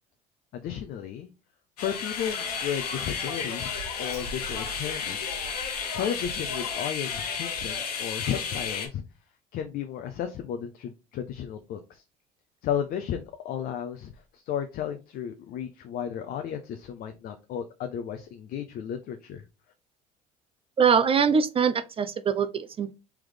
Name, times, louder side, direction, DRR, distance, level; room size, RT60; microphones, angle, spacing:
voice 1, 0.5-1.3 1.8-5.4 5.9-9.0 9.5-12.0 12.6-19.4, left 9 dB, 50° left, 0.6 m, -34 dB
sound 1, 1.8-8.9, left 6 dB, 85° left, 0.9 m, -32 dB
voice 2, 20.8-22.9, right 6 dB, 30° right, 0.5 m, -23 dB
3.4 x 3.0 x 3.8 m
hypercardioid pair, 75°, 19 cm